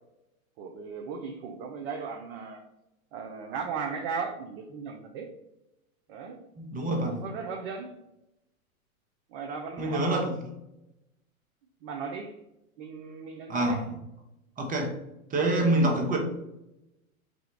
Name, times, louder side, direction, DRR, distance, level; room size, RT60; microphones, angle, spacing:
voice 1, 0.6-2.6 3.1-5.3 6.1-6.4 6.9-7.9 9.3-10.3 11.8-12.4 12.8-13.8, right 5 dB, 40° right, 2 dB, 0.6 m, -37 dB
voice 2, 6.6-7.2 9.8-10.3 13.5-13.8 14.6-14.9 15.3-16.2, right 1 dB, 20° right, 2 dB, 0.9 m, -26 dB
5.0 x 2.3 x 4.5 m, 0.90 s
hypercardioid pair, 105°, 43 cm